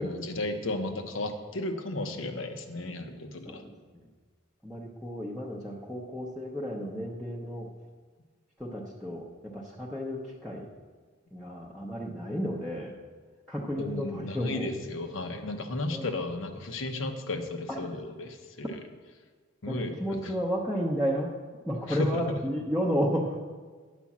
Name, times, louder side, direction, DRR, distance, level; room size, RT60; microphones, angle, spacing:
voice 1, 0.0-3.6 13.8-18.8 19.6-20.3 21.9-22.4, left 2 dB, 65° left, 6 dB, 1.0 m, -34 dB
voice 2, 4.6-7.7 8.6-10.7 11.3-13.0 13.5-14.7 15.9-16.1 17.7-17.8 19.7-21.3 21.7-23.4, equal, ahead, -6 dB, 0.8 m, -32 dB
10.0 x 5.2 x 7.2 m, 1.5 s
head